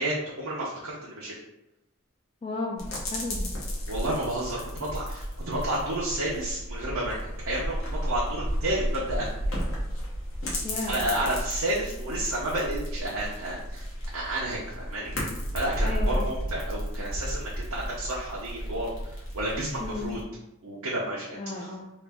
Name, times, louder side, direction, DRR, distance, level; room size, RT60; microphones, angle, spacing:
voice 1, 0.0-1.3 3.9-9.4 10.9-13.8 14.1-15.1 15.5-18.9 19.3-20.2 20.6-21.7, right 1 dB, 80° right, -5 dB, 0.7 m, -31 dB
voice 2, 2.4-3.5 10.6-11.1 15.8-16.3 19.8-20.2 21.3-21.9, left 2 dB, 25° left, -1 dB, 0.3 m, -34 dB
sound 1, 2.8-20.2, equal, 70° left, 1.0 m, -33 dB
3.2 x 2.4 x 3.5 m, 0.91 s
head